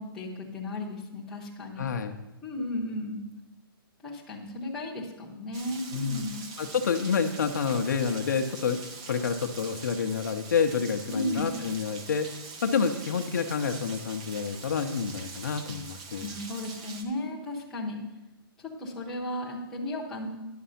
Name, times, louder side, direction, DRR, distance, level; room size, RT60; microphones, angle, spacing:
voice 1, 0.0-1.9 2.4-3.2 4.0-6.4 11.1-11.5 16.2-18.0 18.8-20.3, left 1 dB, 5° left, -6 dB, 0.8 m, -34 dB
voice 2, 1.8-2.1 5.9-6.2 6.6-8.8 9.1-12.3 12.6-16.3, left 6 dB, 50° left, 6 dB, 0.6 m, -28 dB
Rain, 5.5-17.0, right 4 dB, 15° right, 0.4 m, -43 dB
10.0 x 5.9 x 5.6 m, 0.99 s
hypercardioid pair, 180°, 12 cm